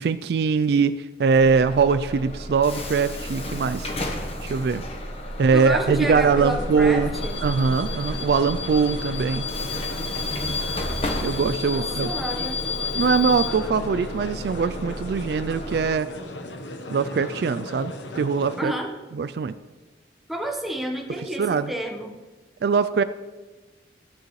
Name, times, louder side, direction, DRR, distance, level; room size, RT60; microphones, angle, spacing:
voice 1, 0.0-4.8 5.4-7.2 7.4-9.5 11.2-12.1 12.9-16.1 16.9-18.7 19.1-19.5 21.4-21.7 22.6-23.0, right 5 dB, 60° right, 13 dB, 0.3 m, -22 dB
Bus / Alarm, 1.3-15.9, left 2 dB, 35° left, 1.1 m, -32 dB
sound 1, 5.0-14.3, equal, 55° left, 3.4 m, -39 dB
voice 2, 5.5-7.4 11.7-12.7 18.6-18.9 20.3-22.1, right 1 dB, ahead, 1 dB, 1.1 m, -30 dB
sound 2, 5.6-18.6, left 1 dB, 85° left, 1.1 m, -36 dB
14.0 x 9.3 x 3.2 m, 1.2 s
head